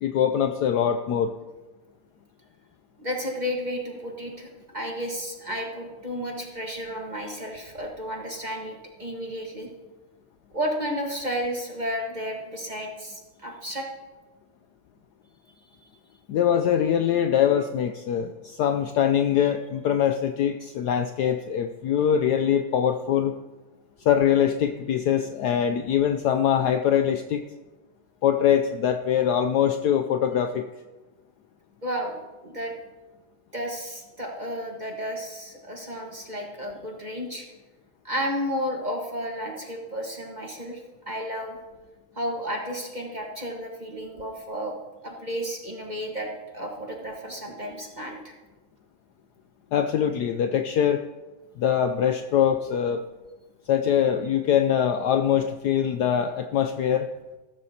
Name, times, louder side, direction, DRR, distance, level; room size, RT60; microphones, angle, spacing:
voice 1, 0.0-1.3 16.3-23.4 24.0-27.4 28.2-30.6 49.7-51.0 51.6-53.0 53.7-57.1, left 9 dB, 85° left, 7 dB, 0.9 m, -23 dB
voice 2, 3.0-9.7 10.5-13.9 31.8-32.7 33.5-37.5 38.0-40.8 41.1-41.6 42.1-44.7 45.0-48.3, equal, 25° right, 0 dB, 1.2 m, -32 dB
15.0 x 13.5 x 2.8 m, 1.2 s
omnidirectional pair, 2.3 m